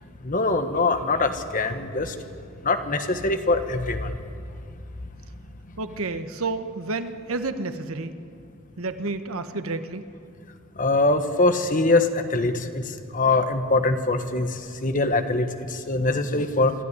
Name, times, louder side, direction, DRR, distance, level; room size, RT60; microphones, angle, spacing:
voice 1, 0.2-2.1 2.6-4.1 10.8-12.8 13.1-14.5 14.8-16.7, left 2 dB, 40° left, 8 dB, 1.3 m, -23 dB
voice 2, 5.8-8.1 8.8-10.0, right 3 dB, 75° right, 9 dB, 1.2 m, -30 dB
26.5 x 13.0 x 9.8 m, 2.5 s
head